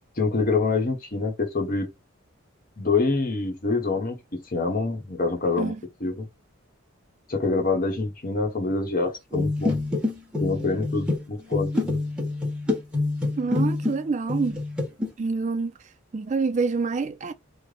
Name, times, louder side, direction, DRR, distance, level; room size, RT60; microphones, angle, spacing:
voice 1, 0.2-1.9 2.8-5.7 6.0-6.3 7.3-9.8 10.4-12.0, left 3 dB, 40° left, 0.9 m, -26 dB
sound 1, 9.3-14.0 14.3-15.1, left 2 dB, 5° right, 1.1 m, -26 dB
voice 2, 13.4-14.6 15.2-15.7 16.1-17.3, right 4 dB, 35° right, 0.3 m, -26 dB
3.2 x 2.1 x 3.7 m
head